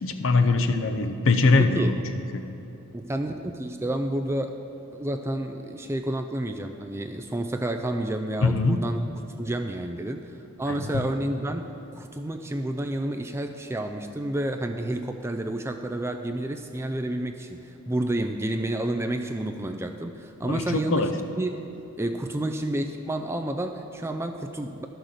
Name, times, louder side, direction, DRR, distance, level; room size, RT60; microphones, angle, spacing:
voice 1, 0.0-1.9 2.3-2.4 8.4-8.8 10.7-10.9 20.4-21.1, left 3 dB, 55° left, 7 dB, 0.6 m, -22 dB
voice 2, 1.6-1.9 2.9-4.5 4.9-9.0 9.4-10.3 10.6-11.6 11.9-21.1 21.4-21.6 22.0-24.9, right 1 dB, 10° right, 5 dB, 0.3 m, -30 dB
12.5 x 6.1 x 6.5 m, 2.9 s
head